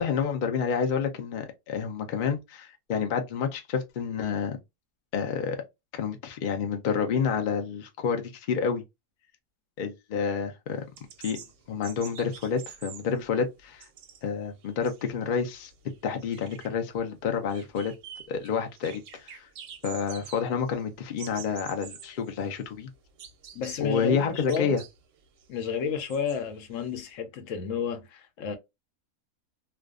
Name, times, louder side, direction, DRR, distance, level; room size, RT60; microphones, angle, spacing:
voice 1, 0.0-4.6 5.1-5.6 5.9-8.8 9.8-10.8 11.2-11.4 11.7-13.9 14.2-15.7 16.0-17.9 18.3-19.5 19.8-22.9 23.8-24.8, left 6 dB, 90° left, 0.4 m, -29 dB
sound 1, 10.7-27.1, right 8 dB, 70° right, 0.8 m, -48 dB
voice 2, 23.5-24.8 25.5-28.6, left 6 dB, 65° left, 0.9 m, -31 dB
2.4 x 2.2 x 2.3 m
omnidirectional pair, 1.5 m